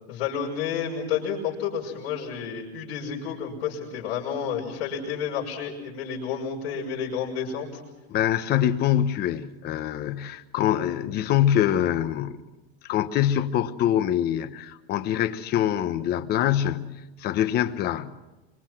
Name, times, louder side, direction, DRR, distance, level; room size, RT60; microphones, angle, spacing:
voice 1, 0.1-7.8, left 7 dB, 85° left, 5.9 m, -30 dB
voice 2, 8.1-12.4 12.8-18.1, left 11 dB, 30° left, 1.1 m, -24 dB
26.0 x 25.0 x 6.1 m
supercardioid pair, 165°, 31 cm